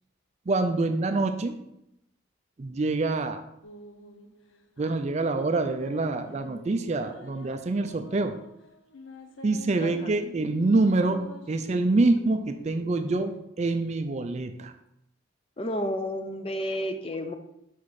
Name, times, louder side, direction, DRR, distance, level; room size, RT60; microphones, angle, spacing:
voice 1, 0.5-1.6 2.6-3.4 4.8-8.3 9.4-14.7, right 2 dB, 35° right, 8 dB, 0.4 m, -26 dB
sound 1, 3.6-13.4, left 1 dB, 70° left, 0.7 m, -47 dB
voice 2, 9.8-10.1 15.6-17.3, equal, 25° left, 6 dB, 0.5 m, -31 dB
5.9 x 4.2 x 4.7 m, 0.82 s
head